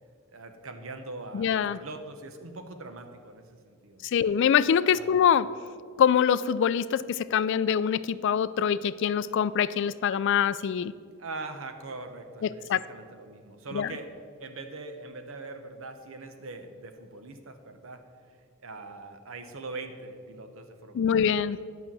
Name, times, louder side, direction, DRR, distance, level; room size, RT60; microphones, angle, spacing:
voice 1, 0.3-4.2 4.9-5.2 11.2-14.1 14.4-18.1 18.6-21.4, right 3 dB, 65° right, 7 dB, 1.0 m, -42 dB
voice 2, 1.3-1.8 4.1-5.5 6.0-10.9 12.7-12.8 13.7-13.9 20.9-21.6, left 8 dB, 60° left, 16 dB, 0.3 m, -24 dB
10.0 x 5.8 x 7.4 m, 2.1 s
head